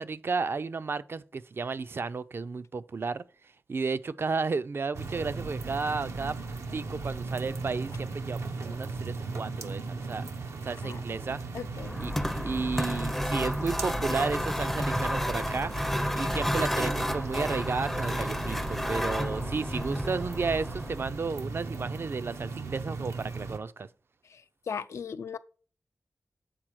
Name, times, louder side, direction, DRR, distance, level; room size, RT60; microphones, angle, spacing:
voice 1, 0.0-3.2 3.7-6.4 6.7-10.2 10.6-11.4 12.0-23.9, right 4 dB, 55° right, 0.4 m, -33 dB
sound 1, 4.9-23.6, right 4 dB, 90° right, 0.8 m, -38 dB
voice 2, 11.5-12.0 24.3-25.4, left 6 dB, 90° left, 0.4 m, -38 dB
sound 2, 11.8-21.2, equal, 5° left, 0.4 m, -31 dB
7.5 x 4.2 x 4.6 m
wide cardioid pair, 75°, 5 cm